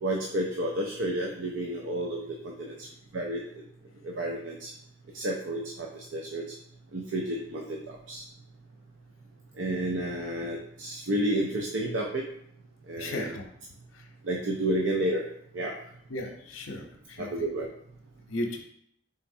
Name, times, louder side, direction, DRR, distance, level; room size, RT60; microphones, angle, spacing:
voice 1, 0.0-2.9 3.1-3.4 4.0-4.7 5.1-6.4 6.9-7.8 8.1-8.2 9.6-12.2 12.9-13.4 14.2-15.2 15.5-15.7 17.2-17.7, right 1 dB, 65° right, 0 dB, 0.5 m, -31 dB
voice 2, 13.0-13.4 13.9-14.0 16.1-17.3 18.3-18.6, left 1 dB, 80° left, 3 dB, 0.7 m, -35 dB
4.1 x 3.7 x 2.6 m, 0.69 s
head